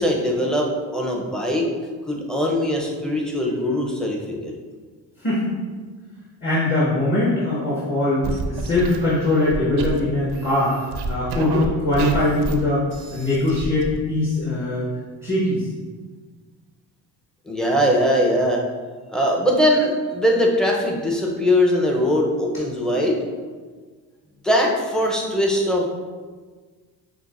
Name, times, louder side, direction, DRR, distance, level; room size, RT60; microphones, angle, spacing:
voice 1, 0.0-1.7 2.1-4.5 17.5-18.6 19.1-23.2 24.4-25.9, equal, ahead, -2 dB, 0.7 m, -21 dB
voice 2, 5.2-5.6 6.4-10.8 11.1-12.8 13.1-14.9 15.2-15.7, left 2 dB, 30° left, -7 dB, 1.2 m, -21 dB
sound 1, 8.2-10.0 10.3-11.7 11.9-12.6 12.9-14.0, right 3 dB, 65° right, 0.6 m, -29 dB
5.7 x 2.1 x 2.5 m, 1.5 s
supercardioid pair, 65°, 44 cm